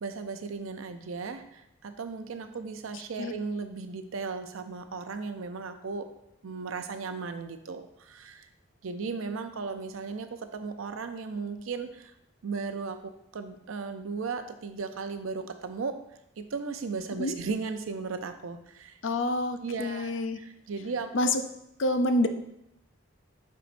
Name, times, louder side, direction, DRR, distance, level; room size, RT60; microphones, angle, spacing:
voice 1, 0.0-6.1 6.4-8.5 8.8-12.1 12.4-16.0 16.4-19.0 19.6-21.4, right 4 dB, 80° right, 8 dB, 0.5 m, -36 dB
voice 2, 19.0-20.4 21.1-21.4 21.8-22.3, left 1 dB, 65° left, 8 dB, 0.5 m, -27 dB
7.9 x 4.6 x 2.6 m, 0.80 s
head